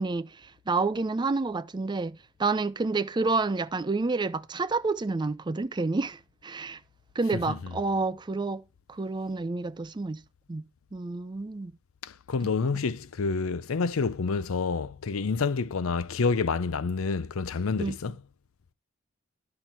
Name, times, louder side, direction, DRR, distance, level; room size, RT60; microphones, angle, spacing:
voice 1, 0.0-6.8 7.2-8.6 8.9-10.2 10.5-10.7 10.9-11.7 17.8-18.0, right 3 dB, 20° right, 0.4 m, -29 dB
voice 2, 12.0-18.2, left 4 dB, 80° left, 0.6 m, -28 dB
11.0 x 5.8 x 4.4 m
head